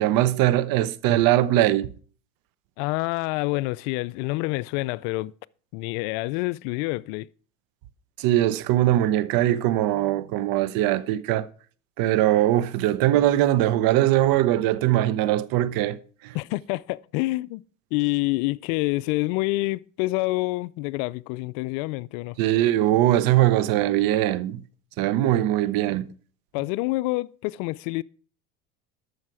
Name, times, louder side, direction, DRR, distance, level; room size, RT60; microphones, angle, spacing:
voice 1, 0.0-1.9 8.2-11.5 12.0-16.0 16.2-16.4 22.4-24.6 25.0-26.1, right 13 dB, 60° right, 0.9 m, -21 dB
voice 2, 2.8-5.3 5.7-7.3 16.3-17.6 17.9-22.4 26.5-28.0, left 21 dB, 65° left, 0.5 m, -27 dB
12.5 x 6.5 x 4.8 m
hypercardioid pair, 85°, 40 cm